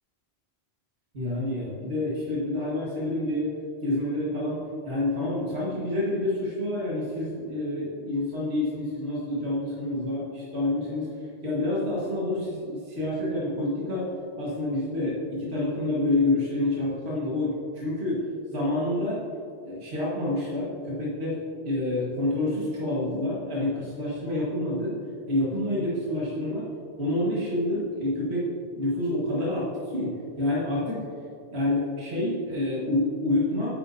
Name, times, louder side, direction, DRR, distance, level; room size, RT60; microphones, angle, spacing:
voice 1, 1.1-3.5 3.8-11.1 11.4-18.3 18.5-19.2 19.6-25.0 25.3-26.7 27.0-28.5 28.8-31.0 31.5-33.7, left 1 dB, 65° right, -6 dB, 1.9 m, -28 dB
9.8 x 8.3 x 2.7 m, 2.5 s
omnidirectional pair, 1.1 m